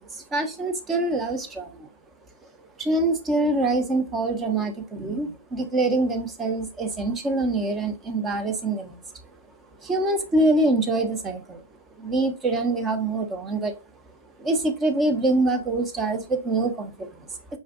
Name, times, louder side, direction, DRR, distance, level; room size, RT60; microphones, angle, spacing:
voice 1, 0.3-1.7 2.8-9.0 9.8-11.6 12.0-13.7 14.4-17.1, right 2 dB, 15° right, 0.8 m, -24 dB
5.2 x 2.4 x 2.4 m
figure-of-eight pair, 115°, 0 cm